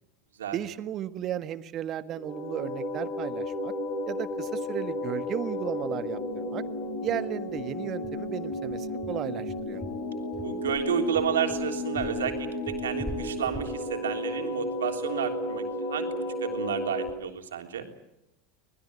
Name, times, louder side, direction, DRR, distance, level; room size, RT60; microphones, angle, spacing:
voice 1, 0.5-3.7 4.1-6.6 7.0-9.8, right 11 dB, 40° right, 11 dB, 1.5 m, -35 dB
sound 1, 2.1-17.1, left 1 dB, 55° left, 3.1 m, -33 dB
sound 2, 5.1-5.2 5.5-5.6 6.0-6.1 6.5-6.6 7.1-15.5, equal, ahead, 4.4 m, -44 dB
voice 2, 10.4-16.1 16.4-17.9, right 8 dB, 80° right, 4 dB, 3.4 m, -31 dB
25.5 x 20.0 x 8.6 m, 0.86 s
hypercardioid pair, 85°, 0 cm